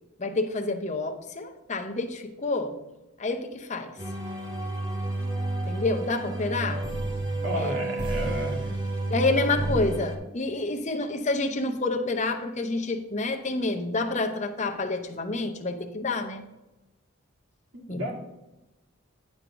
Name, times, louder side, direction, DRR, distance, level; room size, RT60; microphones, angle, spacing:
voice 1, 0.2-2.8 3.2-3.9 5.7-6.9 7.6-7.8 9.1-16.4 17.9-18.1, left 3 dB, 35° left, 5 dB, 0.7 m, -28 dB
sound 1, 4.0-10.2, right 2 dB, 20° right, 0.9 m, -30 dB
voice 2, 7.4-8.7 9.6-9.9 17.7-18.1, equal, 65° right, -1 dB, 1.9 m, -33 dB
9.7 x 3.8 x 5.8 m, 1.0 s
head